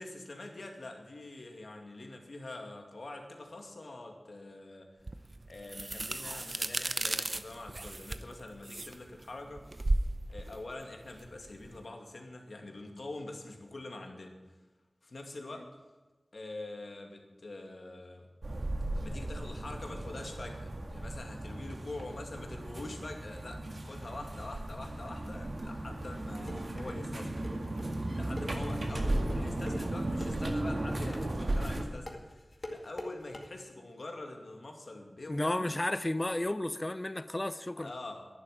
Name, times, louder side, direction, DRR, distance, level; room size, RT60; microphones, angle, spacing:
voice 1, 0.0-5.0 5.5-9.6 10.3-14.4 15.0-15.7 16.3-18.3 19.0-35.7 37.8-38.3, left 2 dB, 75° left, 3 dB, 2.3 m, -45 dB
sound 1, 5.1-11.8, right 2 dB, 50° right, 0.7 m, -35 dB
sound 2, 18.4-31.8, right 1 dB, 70° right, 2.0 m, -36 dB
sound 3, 26.0-33.5, left 1 dB, 45° left, 2.1 m, -44 dB
voice 2, 35.3-37.9, left 1 dB, 30° left, 14 dB, 0.7 m, -32 dB
11.0 x 11.0 x 9.1 m, 1.2 s
wide cardioid pair, 55°, 0 cm